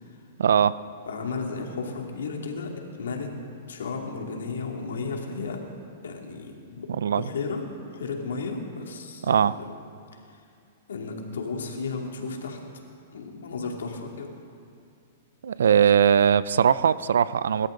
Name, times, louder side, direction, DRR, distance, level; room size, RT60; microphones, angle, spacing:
voice 1, 0.4-0.8 6.9-7.3 9.3-9.5 15.4-17.7, right 8 dB, 85° right, 17 dB, 0.5 m, -20 dB
voice 2, 1.1-3.3 3.7-5.6 6.0-7.6 7.9-9.7 10.9-12.6 13.1-14.3, left 4 dB, 90° left, 1 dB, 2.5 m, -33 dB
28.0 x 13.0 x 3.9 m, 2.4 s
hypercardioid pair, 140°, 0 cm